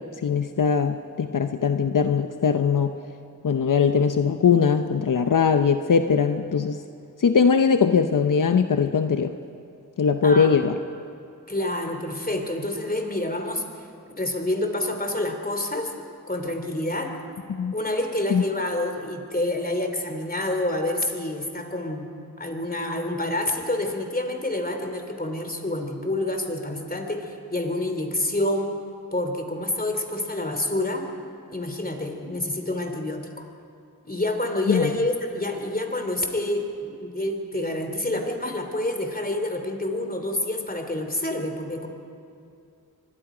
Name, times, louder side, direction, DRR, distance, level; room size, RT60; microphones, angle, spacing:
voice 1, 0.0-2.9 3.4-6.8 7.2-9.3 10.0-10.8 17.5-17.7 18.3-18.4 34.7-34.9, left 6 dB, 75° left, 7 dB, 0.8 m, -21 dB
voice 2, 10.2-10.5 11.5-13.9 14.1-15.9 16.3-17.2 17.7-22.1 22.4-28.7 29.1-31.1 31.5-33.5 34.0-41.9, left 1 dB, 30° left, 5 dB, 3.0 m, -28 dB
24.5 x 21.5 x 5.0 m, 2.5 s
wide cardioid pair, 55°, 32 cm